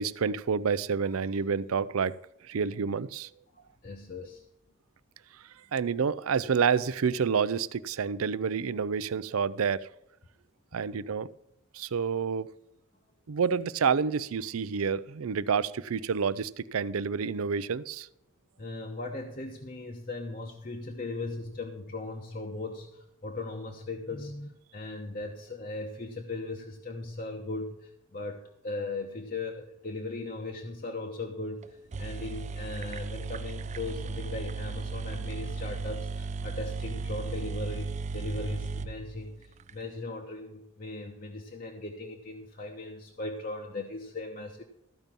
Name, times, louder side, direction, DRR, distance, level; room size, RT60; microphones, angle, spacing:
voice 1, 0.0-2.1 2.5-3.3 5.7-9.9 10.7-11.3 11.7-12.5 13.3-18.1, right 6 dB, 85° right, 0.5 m, -28 dB
voice 2, 3.8-4.4 18.6-44.6, left 2 dB, 40° left, 0.9 m, -38 dB
sound 1, 31.6-31.7 31.9-39.7, right 4 dB, 35° right, 0.4 m, -36 dB
14.0 x 5.3 x 7.4 m
head